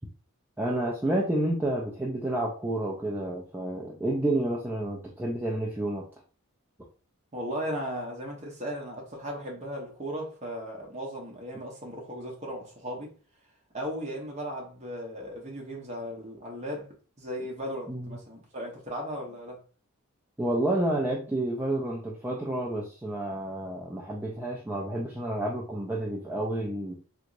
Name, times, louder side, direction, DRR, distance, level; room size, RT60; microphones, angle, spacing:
voice 1, 0.6-6.0 17.9-18.2 20.4-27.0, right 1 dB, 10° right, 0.3 m, -30 dB
voice 2, 7.3-13.1 13.7-19.6, equal, 30° right, 0.9 m, -36 dB
3.4 x 2.9 x 2.5 m
head